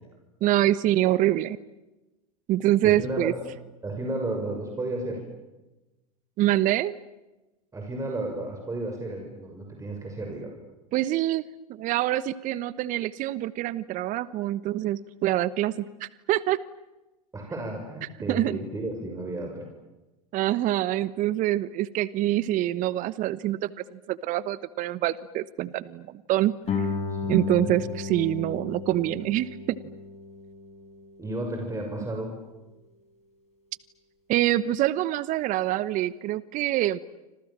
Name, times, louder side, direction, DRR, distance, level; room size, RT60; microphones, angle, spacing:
voice 1, 0.4-1.6 2.5-3.3 6.4-7.0 10.9-11.4 11.7-16.6 18.3-18.6 20.3-26.9 27.3-29.8 34.3-37.0, right 14 dB, 45° right, 18 dB, 1.1 m, -25 dB
voice 2, 2.8-3.3 3.8-5.2 7.7-10.5 17.3-19.7 27.1-27.9 31.2-32.3, right 2 dB, 15° right, 2 dB, 6.7 m, -33 dB
Guitar, 26.7-32.0, left 5 dB, 35° left, 6.2 m, -34 dB
29.5 x 26.5 x 7.5 m, 1.1 s
hypercardioid pair, 90°, 19 cm